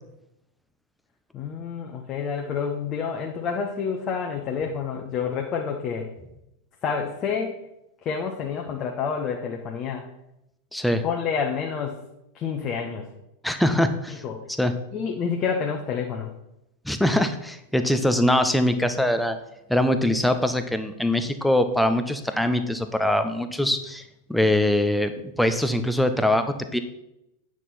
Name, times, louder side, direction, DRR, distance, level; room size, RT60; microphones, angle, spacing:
voice 1, 1.3-6.1 6.8-7.5 8.0-10.1 11.0-12.0 12.3-13.1 14.2-14.4 14.9-16.3, left 6 dB, 30° left, 1 dB, 1.0 m, -28 dB
voice 2, 10.7-11.0 13.4-14.2 14.6-14.7 16.9-19.4 19.7-24.0 24.3-25.1 25.4-26.8, left 1 dB, ahead, 8 dB, 0.7 m, -22 dB
9.1 x 6.2 x 4.2 m, 0.85 s
figure-of-eight pair, 90°, 0 cm